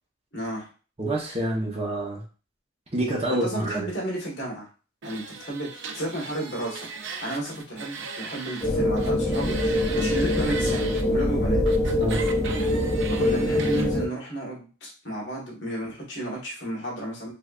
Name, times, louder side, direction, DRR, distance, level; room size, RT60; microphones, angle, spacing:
voice 1, 0.3-0.7 3.3-4.7 5.0-11.6 13.1-17.3, right 1 dB, 65° left, -3 dB, 1.4 m, -33 dB
voice 2, 1.0-2.2 2.9-3.9 12.0-12.2, right 1 dB, 30° right, -2 dB, 0.9 m, -27 dB
sound 1, 5.0-8.7 9.0-11.0 11.7-13.9, right 5 dB, 65° right, 0.5 m, -38 dB
sound 2, 8.6-14.1, left 1 dB, 15° left, 0.7 m, -24 dB
3.3 x 3.3 x 2.4 m, 0.36 s
head